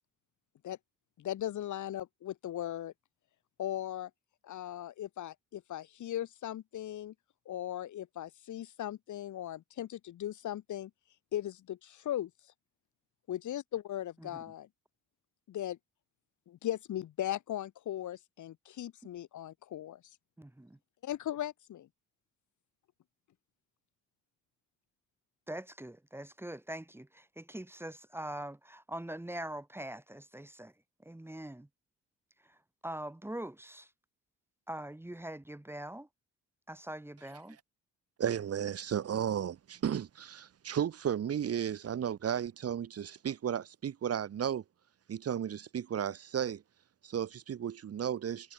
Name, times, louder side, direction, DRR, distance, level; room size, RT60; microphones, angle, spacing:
voice 1, 1.2-2.9 3.6-4.1 4.4-7.1 7.4-10.9 11.3-12.5 13.3-14.7 15.5-15.8 16.5-20.2 21.0-21.9, left 12 dB, 75° left, 6.6 m, -38 dB
voice 2, 20.4-20.8 25.5-30.7 31.0-31.7 32.5-32.6 32.8-33.9 34.7-36.1 36.7-37.6, right 1 dB, 10° right, 2.1 m, -43 dB
voice 3, 38.2-44.6 45.1-46.6 47.0-48.5, right 9 dB, 55° right, 1.8 m, -34 dB
cardioid pair, 90°, 30 cm